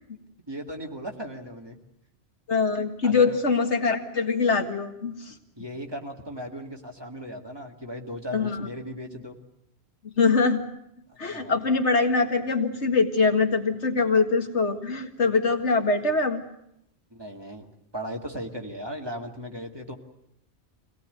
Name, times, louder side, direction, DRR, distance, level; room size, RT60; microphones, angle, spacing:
voice 1, 0.5-1.8 3.0-3.4 5.6-9.4 11.1-11.6 17.1-17.7 17.9-19.9, equal, 20° right, 1 dB, 2.2 m, -37 dB
voice 2, 2.5-5.3 8.3-8.7 10.0-10.6 11.2-16.4, left 4 dB, 75° left, 4 dB, 2.2 m, -23 dB
24.5 x 17.5 x 9.2 m, 0.81 s
omnidirectional pair, 1.2 m